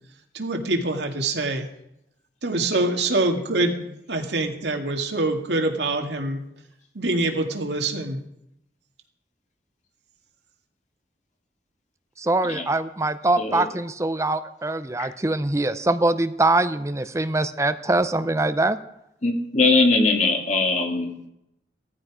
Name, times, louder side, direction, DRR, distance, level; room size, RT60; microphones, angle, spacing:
voice 1, 0.3-1.7 2.4-6.4 6.9-8.2, right 2 dB, 75° right, 3 dB, 2.2 m, -25 dB
voice 2, 12.2-18.8, right 2 dB, 15° right, 11 dB, 0.6 m, -23 dB
voice 3, 19.2-21.3, left 3 dB, 40° left, 3 dB, 2.3 m, -21 dB
18.0 x 14.0 x 5.0 m, 0.81 s
head